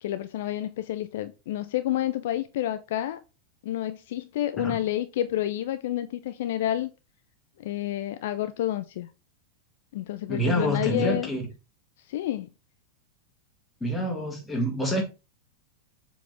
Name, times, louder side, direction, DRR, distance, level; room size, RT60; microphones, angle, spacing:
voice 1, 0.0-3.2 3.6-6.9 7.6-9.1 9.9-11.3 12.1-12.5, left 13 dB, 55° left, 0.5 m, -29 dB
voice 2, 10.3-11.4 13.8-15.0, equal, 10° left, 2.2 m, -27 dB
7.1 x 4.1 x 3.5 m
figure-of-eight pair, 90°, 0 cm